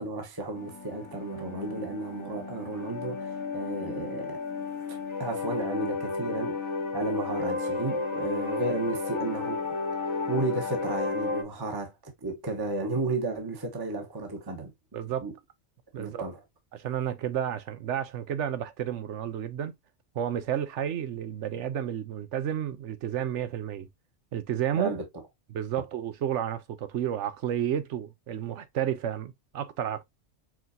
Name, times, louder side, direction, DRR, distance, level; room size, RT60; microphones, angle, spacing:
voice 1, 0.0-4.4 4.9-9.7 10.0-14.7 15.2-15.3 16.0-16.4 24.8-25.1, right 2 dB, 20° right, 1.0 m, -33 dB
sound 1, 0.5-11.4, left 4 dB, 25° left, 1.0 m, -33 dB
voice 2, 14.9-15.3 15.9-16.2 16.7-19.7 20.1-23.9 24.3-24.9 25.5-30.0, right 10 dB, 85° right, 1.1 m, -31 dB
4.8 x 3.9 x 2.6 m
omnidirectional pair, 1.2 m